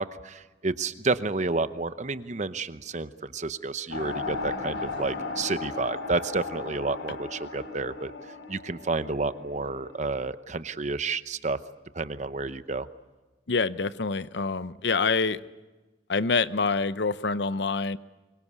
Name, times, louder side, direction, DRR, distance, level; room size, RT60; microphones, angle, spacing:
voice 1, 0.0-11.6 11.9-12.9, right 3 dB, 40° right, 13 dB, 0.8 m, -30 dB
sound 1, 3.9-9.9, left 3 dB, 85° left, 3.5 m, -36 dB
voice 2, 13.5-15.4 16.1-18.0, left 4 dB, 65° left, 15 dB, 0.7 m, -26 dB
24.0 x 22.5 x 8.3 m, 1.2 s
head